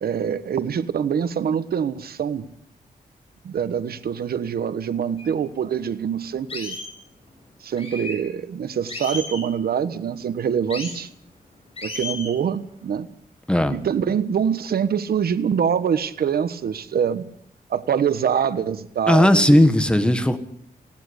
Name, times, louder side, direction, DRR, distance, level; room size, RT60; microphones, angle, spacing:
voice 1, 0.0-2.5 3.4-6.8 7.6-11.1 11.8-13.1 13.7-17.2 17.7-19.5, right 7 dB, 85° right, 13 dB, 1.3 m, -24 dB
sound 1, 5.2-5.3 5.8-5.9 6.5-6.9 7.8-8.2 8.9-9.5 10.7-11.0 11.8-12.3, left 3 dB, 40° left, 6.8 m, -33 dB
voice 2, 19.1-20.4, left 1 dB, 5° left, 9 dB, 1.6 m, -16 dB
19.5 x 18.0 x 8.1 m, 0.67 s
wide cardioid pair, 155°, 15 cm